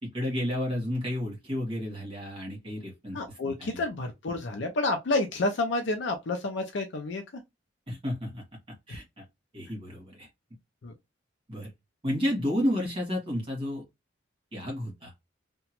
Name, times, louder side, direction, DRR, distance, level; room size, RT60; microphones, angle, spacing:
voice 1, 0.0-3.2 3.4-3.8 7.9-8.4 8.9-9.2 9.5-10.3 11.5-11.7 12.0-13.8 14.5-15.1, left 1 dB, 25° right, 1.4 m, -31 dB
voice 2, 3.1-7.2 10.8-10.9, left 2 dB, 65° left, 0.5 m, -29 dB
2.8 x 2.2 x 2.8 m
head